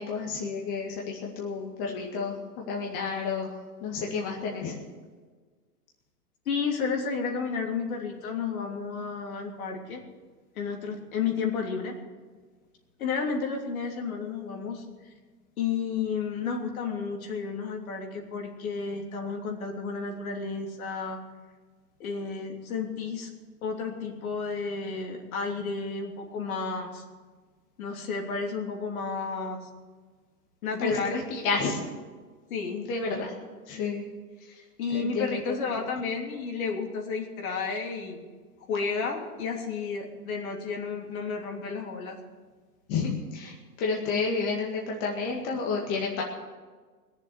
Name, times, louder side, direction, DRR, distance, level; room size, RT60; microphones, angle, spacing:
voice 1, 0.0-3.5 3.8-4.8 30.8-31.8 32.8-33.3 33.7-34.0 34.9-35.5 42.9-46.2, left 4 dB, 35° left, -1 dB, 2.1 m, -30 dB
voice 2, 6.4-10.0 10.5-11.9 13.0-14.8 15.6-21.2 22.0-23.3 23.6-27.0 27.8-29.7 30.6-31.2 32.5-32.9 34.8-38.2 38.7-42.2, left 5 dB, 60° left, 1 dB, 3.2 m, -32 dB
20.0 x 7.4 x 8.2 m, 1.5 s
hypercardioid pair, 140°, 47 cm